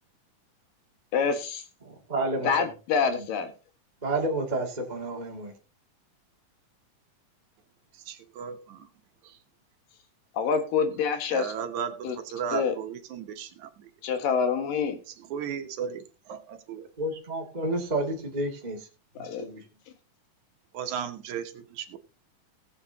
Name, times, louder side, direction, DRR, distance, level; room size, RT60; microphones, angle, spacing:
voice 1, 1.1-1.6 2.4-3.5 10.3-11.5 12.0-12.2 12.5-12.7 14.0-15.0 19.2-19.4, left 6 dB, 85° left, 7 dB, 3.3 m, -26 dB
voice 2, 1.8-2.7 3.1-3.3 4.0-5.5 17.0-18.9 19.2-19.6, right 2 dB, 15° right, 0 dB, 1.6 m, -31 dB
voice 3, 8.1-8.9 9.2-9.3 11.3-13.9 15.3-16.9 20.7-22.0, right 8 dB, 70° right, 7 dB, 2.4 m, -35 dB
18.5 x 7.9 x 2.8 m, 0.32 s
omnidirectional pair, 3.8 m